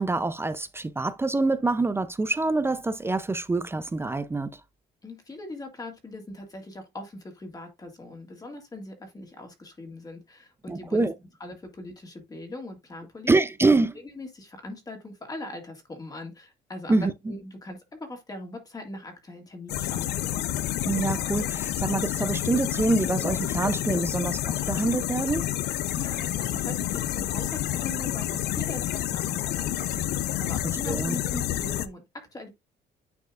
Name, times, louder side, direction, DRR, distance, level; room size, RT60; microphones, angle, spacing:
voice 1, 0.0-4.6 10.7-11.1 13.3-13.9 16.9-17.1 20.9-25.5 30.9-31.2, right 3 dB, 15° right, 0.5 m, -25 dB
voice 2, 5.0-11.1 11.4-13.3 13.7-13.8 14.2-20.2 25.9-32.5, left 2 dB, 20° left, 2.0 m, -41 dB
sound 1, 19.7-31.9, left 12 dB, 75° left, 0.7 m, -29 dB
9.4 x 4.4 x 2.4 m
cardioid pair, 110°, 17 cm